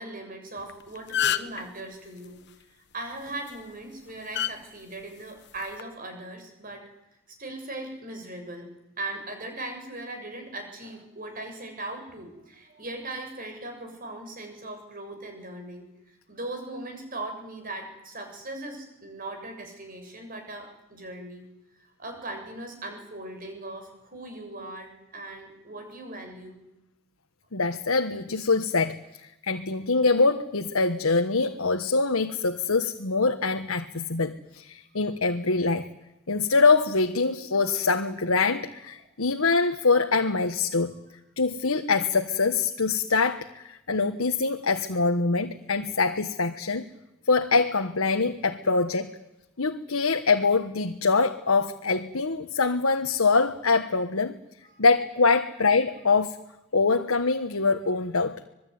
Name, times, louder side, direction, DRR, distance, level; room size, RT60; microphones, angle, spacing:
voice 1, 0.0-2.6 2.9-6.8 7.3-8.7 9.0-21.5 21.8-26.6 54.6-54.8, right 2 dB, 40° right, 5 dB, 7.0 m, -39 dB
sound 1, 0.6-0.7 1.0-1.6 3.3-3.5 4.3-4.5 5.6-5.8, left 10 dB, 55° left, 1.2 m, -26 dB
voice 2, 27.5-35.9 36.3-40.9 41.4-46.9 47.3-49.1 49.6-54.4 54.8-56.4 56.7-58.4, left 4 dB, 90° left, 6 dB, 1.3 m, -24 dB
26.0 x 21.5 x 9.6 m, 0.89 s
head